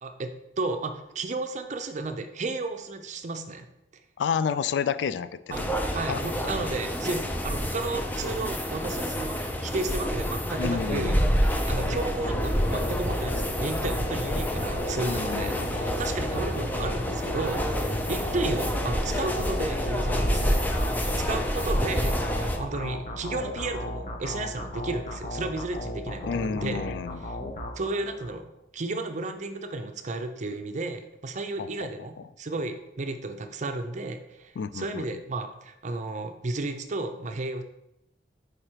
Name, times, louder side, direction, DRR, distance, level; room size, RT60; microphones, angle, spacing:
voice 1, 0.0-3.7 5.5-5.6 5.9-20.6 21.1-26.8 27.8-37.6, right 2 dB, 45° right, 7 dB, 0.6 m, -33 dB
voice 2, 4.2-5.5 5.9-6.3 10.6-11.3 15.0-15.8 26.2-27.2 31.6-31.9 34.6-35.0, left 6 dB, 85° left, 15 dB, 0.3 m, -30 dB
sound 1, 5.5-22.6, equal, 10° left, 0.5 m, -28 dB
sound 2, 11.7-28.3, left 1 dB, 45° left, 0.7 m, -36 dB
4.9 x 4.9 x 4.5 m, 0.87 s
head